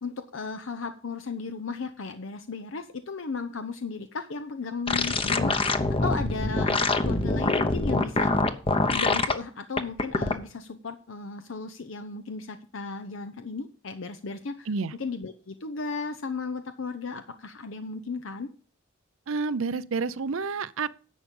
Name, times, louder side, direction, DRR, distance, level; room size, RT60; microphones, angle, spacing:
voice 1, 0.0-5.6 6.0-8.3 8.9-18.5, left 4 dB, 70° left, 0.7 m, -35 dB
sound 1, 4.9-9.3 9.8-10.3, left 2 dB, 25° left, 0.9 m, -24 dB
voice 2, 19.3-21.1, right 4 dB, 75° right, 0.6 m, -29 dB
11.0 x 7.4 x 5.3 m
head